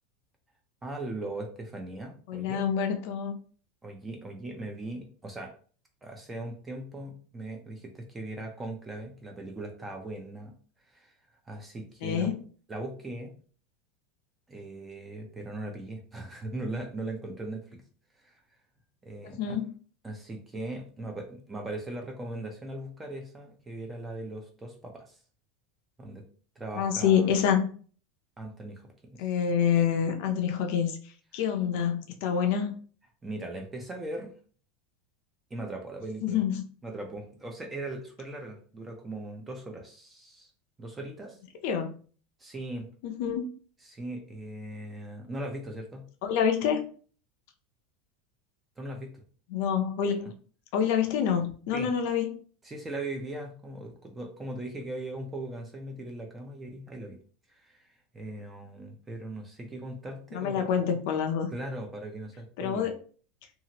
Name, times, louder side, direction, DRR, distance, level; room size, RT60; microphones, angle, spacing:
voice 1, 0.8-2.6 3.8-5.5 6.0-10.5 10.9-11.1 11.5-12.4 12.7-13.3 14.5-17.8 18.2-18.4 19.0-19.6 20.0-25.2 26.0-26.2 26.6-27.3 28.4-29.3 33.2-34.3 35.5-36.4 36.8-40.5 40.8-41.4 42.4-42.9 43.9-46.1 48.8-49.2 51.7-51.9 52.6-57.2 57.5-57.9 58.1-60.6 61.5-62.9, right 2 dB, 10° right, 2 dB, 0.5 m, -39 dB
voice 2, 2.3-3.3 12.0-12.4 19.2-19.7 26.8-27.7 29.2-31.0 31.3-32.7 36.2-36.6 41.6-42.0 43.0-43.5 46.2-46.8 49.5-50.3 50.7-52.4 60.3-61.5 62.6-62.9, left 8 dB, 55° left, 5 dB, 0.5 m, -27 dB
2.8 x 2.4 x 2.8 m, 0.42 s
supercardioid pair, 170°, 0 cm